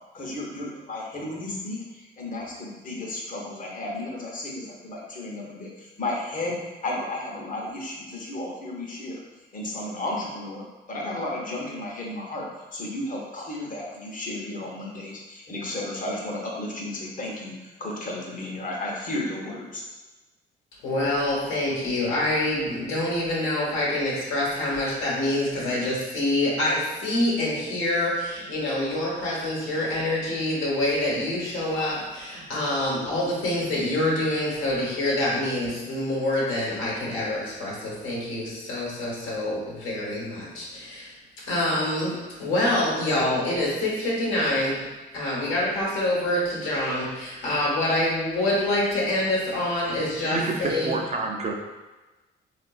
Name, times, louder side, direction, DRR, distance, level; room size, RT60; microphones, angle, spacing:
voice 1, 0.1-6.6 6.8-9.2 9.5-10.6 10.9-19.8, left 1 dB, 45° left, -2 dB, 0.8 m, -33 dB
voice 2, 20.8-44.8 45.1-50.9, left 1 dB, 85° left, -5 dB, 1.0 m, -26 dB
voice 3, 50.3-51.5, right 3 dB, 35° right, 1 dB, 0.4 m, -28 dB
3.6 x 2.4 x 2.3 m, 1.2 s
cardioid pair, 90°, 20 cm